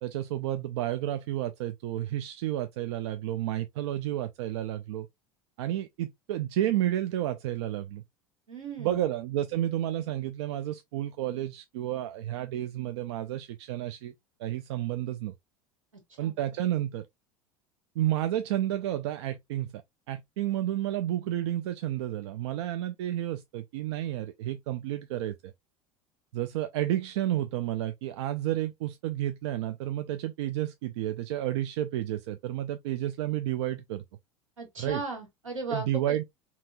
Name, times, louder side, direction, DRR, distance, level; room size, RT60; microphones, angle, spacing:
voice 1, 0.0-5.1 5.6-8.0 8.8-14.1 14.4-15.3 16.2-17.1 18.0-19.8 20.1-25.5 26.3-34.0 34.8-35.0 35.7-36.2, right 13 dB, 60° right, 0.4 m, -31 dB
voice 2, 8.5-9.0 16.2-16.3 34.6-36.2, right 3 dB, 75° right, 1.7 m, -36 dB
4.3 x 2.8 x 2.3 m
figure-of-eight pair, 75°, 17 cm